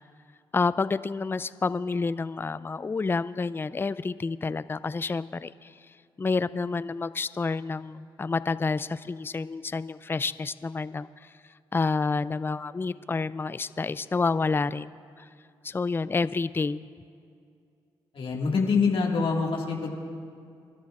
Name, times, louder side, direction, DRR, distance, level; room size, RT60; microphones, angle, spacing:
voice 1, 0.5-5.7 6.2-11.3 11.7-15.3 15.6-16.9, left 4 dB, 20° left, 16 dB, 0.4 m, -29 dB
voice 2, 18.1-20.0, left 4 dB, 60° left, -1 dB, 1.9 m, -25 dB
27.5 x 11.5 x 2.5 m, 2.4 s
supercardioid pair, 55°, 10 cm